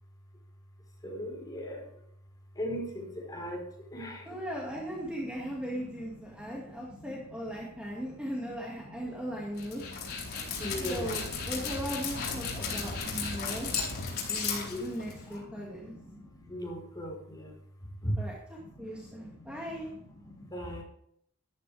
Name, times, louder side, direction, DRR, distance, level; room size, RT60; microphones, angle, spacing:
voice 1, 1.0-1.8 2.5-4.4 5.4-5.6 6.3-7.1 7.4-8.5 8.8-11.2 12.7-14.3 14.7-17.5 18.0-18.2 18.6-20.8, equal, 15° left, -1 dB, 4.7 m, -41 dB
voice 2, 4.3-9.8 10.7-13.7 14.3-15.9 18.2-19.9 20.6-20.7, equal, 5° right, -4 dB, 2.3 m, -38 dB
Dog, 9.6-15.4, left 5 dB, 45° left, 4.5 m, -35 dB
14.0 x 13.0 x 3.6 m, 0.70 s
head